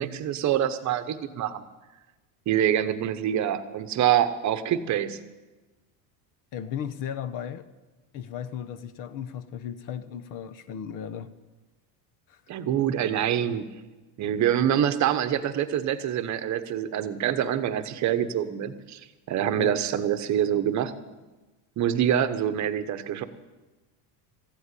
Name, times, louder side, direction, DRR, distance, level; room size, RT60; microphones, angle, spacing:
voice 1, 0.0-1.6 2.5-5.2 12.5-13.7 14.2-19.0 19.3-20.9 21.8-23.2, right 10 dB, 40° right, 1.0 m, -25 dB
voice 2, 6.5-7.7 8.1-11.3 12.3-12.4 19.6-19.8, left 9 dB, 45° left, 0.9 m, -35 dB
14.5 x 7.9 x 9.8 m
cardioid pair, 140°, 46 cm